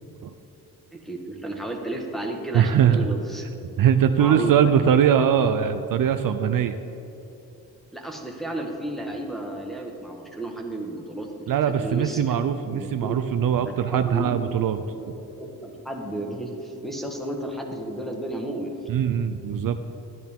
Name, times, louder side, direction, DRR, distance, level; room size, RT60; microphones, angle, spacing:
voice 1, 0.9-3.6 4.1-4.8 7.9-13.2 13.6-14.3 14.6-18.7, right 2 dB, ahead, 0 dB, 1.5 m, -33 dB
voice 2, 2.5-3.1 3.8-6.8 11.5-15.1 18.9-19.8, right 8 dB, 65° right, 9 dB, 0.5 m, -21 dB
12.0 x 10.5 x 3.7 m, 3.0 s
cardioid pair, 85°, 36 cm